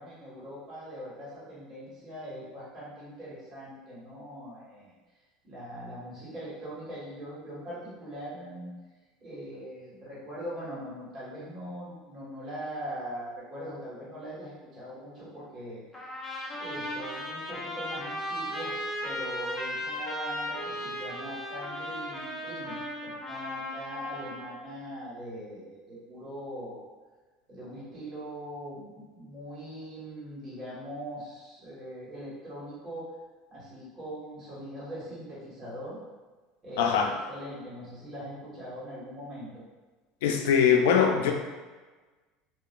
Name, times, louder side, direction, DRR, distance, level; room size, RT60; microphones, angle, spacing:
voice 1, 0.0-4.9 5.4-8.7 9.2-15.8 16.4-26.9 27.5-33.1 33.5-36.0 36.6-39.6, equal, 30° right, -9 dB, 1.3 m, -41 dB
Trumpet, 15.9-24.6, equal, 10° left, 0.5 m, -36 dB
voice 2, 36.8-37.1 40.2-41.3, left 7 dB, 90° left, 3 dB, 0.3 m, -22 dB
2.8 x 2.3 x 2.3 m, 1.3 s
supercardioid pair, 140°, 0 cm